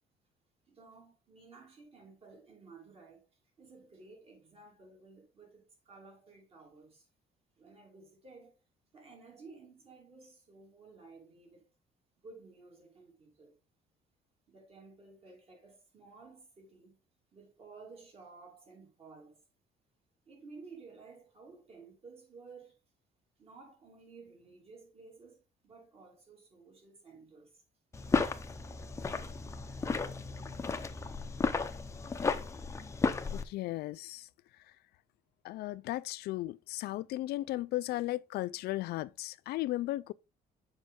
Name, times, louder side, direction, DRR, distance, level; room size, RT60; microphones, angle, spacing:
voice 1, 0.7-3.3 3.6-7.1 7.6-8.6 8.9-11.7 12.2-13.5 14.5-17.0 17.3-19.4 20.3-22.8 23.4-25.4 25.6-27.6, right 4 dB, 35° right, 2.7 m, -54 dB
sound 1, 27.9-33.4, left 4 dB, 15° left, 0.6 m, -33 dB
voice 2, 33.3-34.3 34.5-34.7 35.4-40.1, left 16 dB, 75° left, 0.4 m, -36 dB
7.0 x 5.2 x 3.6 m
cardioid pair, 150°, 17 cm